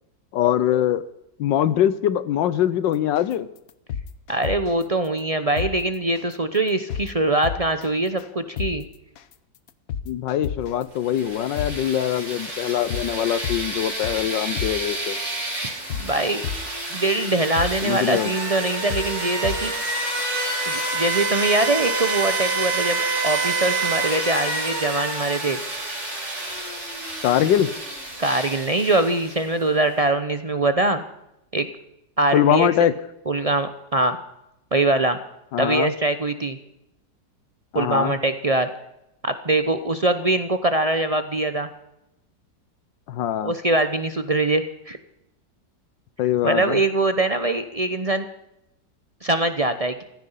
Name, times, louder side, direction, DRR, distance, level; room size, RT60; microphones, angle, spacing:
voice 1, 0.3-1.0 1.4-3.5 10.1-15.2 17.8-18.3 27.2-27.7 32.3-32.9 35.5-35.9 37.7-38.2 43.1-43.5 46.2-46.8, left 11 dB, 75° left, 15 dB, 1.4 m, -22 dB
sound 1, 3.2-3.3 3.7-4.8 5.2-5.3 5.6-5.7 6.2-6.3 6.7-7.1 7.4-7.9 8.2-8.3 8.6-8.7 9.2-9.3 9.7-10.8 11.2-11.3 11.6-11.7 12.2-12.3 12.7-13.1 13.4-14.3 14.6-14.7 15.2-15.3 15.7-16.8 17.2-17.3 17.6-17.7 18.2-18.3 18.7-19.1 19.4-19.9 20.2-20.3, left 8 dB, 60° left, 1.1 m, -30 dB
voice 2, 4.3-8.8 15.9-16.4 16.9-19.7 20.7-25.6 28.2-31.0 31.5-31.7 32.2-32.9 33.3-34.2 34.7-35.2 35.6-36.6 37.7-38.7 39.2-41.7 43.4-45.0 46.4-48.3 49.2-50.0, right 2 dB, 55° right, 9 dB, 0.4 m, -23 dB
sound 2, 11.0-29.6, right 2 dB, 35° right, 4.3 m, -28 dB
15.5 x 14.0 x 5.6 m, 0.85 s
omnidirectional pair, 2.0 m